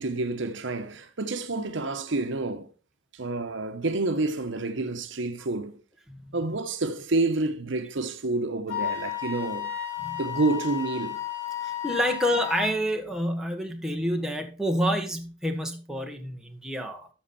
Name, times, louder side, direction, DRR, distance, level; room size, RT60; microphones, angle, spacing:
voice 1, 0.0-2.7 3.1-5.8 6.3-9.7 10.2-11.2, right 2 dB, 70° right, 1.0 m, -29 dB
Wind instrument woodwind instrument, 8.7-12.7, left 11 dB, 85° left, 2.5 m, -33 dB
voice 2, 11.6-17.1, equal, 5° right, 1.4 m, -28 dB
13.0 x 6.2 x 4.2 m
head